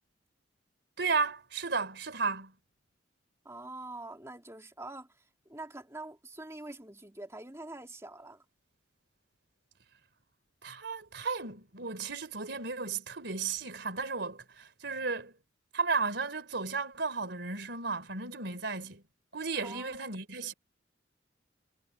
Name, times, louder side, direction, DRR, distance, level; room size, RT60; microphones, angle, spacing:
voice 1, 1.0-2.5 10.6-15.3 15.7-19.0 19.3-20.5, right 4 dB, 60° right, 4.0 m, -34 dB
voice 2, 3.4-5.1 5.5-8.4 19.6-20.0, right 2 dB, 15° right, 2.7 m, -45 dB
head